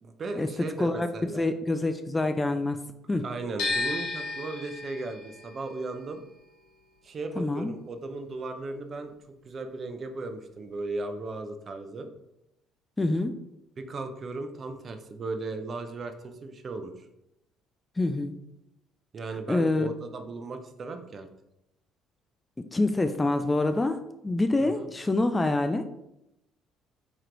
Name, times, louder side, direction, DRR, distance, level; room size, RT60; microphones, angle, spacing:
voice 1, 0.0-1.4 3.2-6.2 7.0-12.1 13.8-17.1 19.1-21.3 24.6-24.9, right 3 dB, 40° right, 7 dB, 0.6 m, -36 dB
voice 2, 1.4-2.8 3.1-3.2 7.4-7.7 13.0-13.4 18.0-18.4 19.5-19.9 22.6-25.8, left 2 dB, 15° left, 9 dB, 0.3 m, -26 dB
sound 1, 3.6-9.6 9.9-11.2, left 3 dB, 80° left, 1.1 m, -36 dB
4.5 x 3.1 x 3.8 m, 0.85 s
cardioid pair, 110°, 0 cm